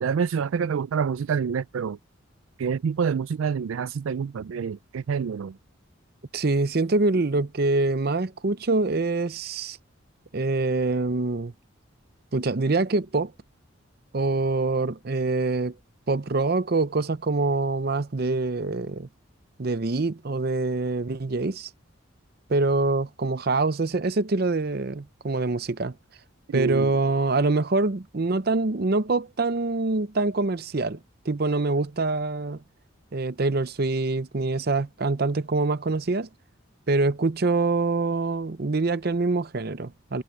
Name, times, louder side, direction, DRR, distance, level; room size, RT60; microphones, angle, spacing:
voice 1, 0.0-2.0 2.6-5.6 26.5-26.9, right 6 dB, 80° right, 0.4 m, -27 dB
voice 2, 6.3-9.8 10.3-11.5 12.3-13.3 14.1-15.7 16.1-19.1 19.6-21.7 22.5-26.0 26.5-31.0 31.3-32.6 33.1-36.3 36.9-40.2, right 3 dB, 50° right, 0.7 m, -25 dB
head